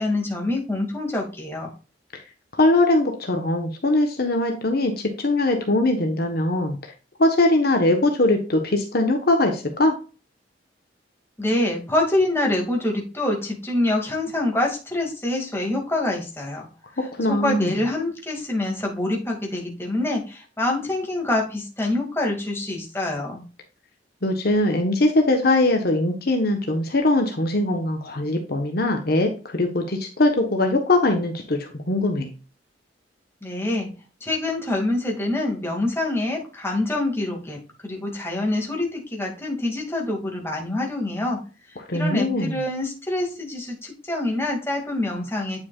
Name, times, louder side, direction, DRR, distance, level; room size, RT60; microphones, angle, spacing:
voice 1, 0.0-1.7 11.4-16.7 17.3-23.4 33.4-33.9 34.2-41.4 41.9-45.6, left 2 dB, 15° left, 0 dB, 2.3 m, -26 dB
voice 2, 2.5-4.9 5.2-6.9 7.2-9.9 17.1-17.7 24.2-32.3 41.9-42.6, left 2 dB, 55° left, 4 dB, 1.3 m, -21 dB
9.6 x 5.9 x 2.4 m, 0.33 s
head